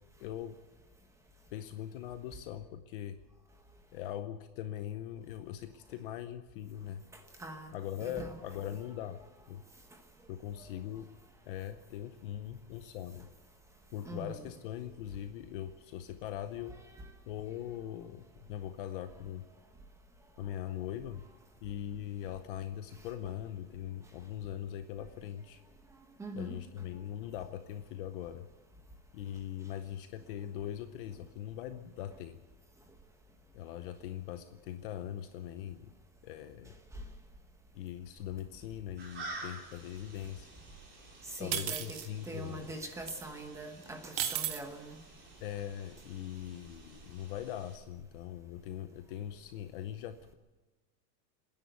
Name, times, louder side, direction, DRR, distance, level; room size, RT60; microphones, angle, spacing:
voice 1, 0.2-0.6 1.5-3.2 3.9-7.1 7.7-9.2 9.5-9.6 10.3-11.1 11.5-13.3 13.9-16.8 17.3-19.4 20.4-21.2 21.6-25.6 26.3-28.5 29.1-32.4 33.5-35.9 36.2-36.7 37.7-40.5 41.4-42.7 45.4-50.3, left 11 dB, 35° left, 10 dB, 0.7 m, -41 dB
voice 2, 7.4-7.7 8.0-8.3 14.1-14.4 26.2-26.6 41.3-42.0 42.2-45.0, right 2 dB, 5° right, 5 dB, 1.0 m, -42 dB
sound 1, 39.0-47.8, right 2 dB, 20° right, 4.1 m, -50 dB
sound 2, 41.5-42.1 43.1-43.2 44.2-44.6, right 11 dB, 90° right, 2.2 m, -34 dB
27.0 x 10.5 x 9.2 m, 1.2 s
supercardioid pair, 175°, 50 cm